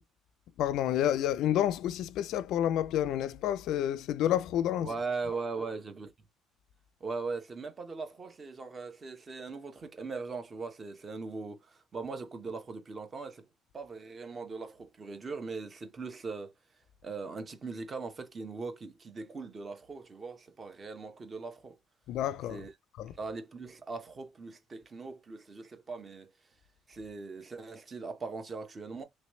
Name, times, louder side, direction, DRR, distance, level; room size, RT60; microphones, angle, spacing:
voice 1, 0.6-4.9 22.1-22.6 23.0-23.1, left 11 dB, 65° left, 0.3 m, -29 dB
voice 2, 4.8-6.1 7.0-13.5 13.7-16.5 17.0-21.8 22.5-22.7 23.2-26.3 26.9-29.0, right 4 dB, 25° right, 0.9 m, -40 dB
3.1 x 3.1 x 3.0 m
cardioid pair, 155°, 0 cm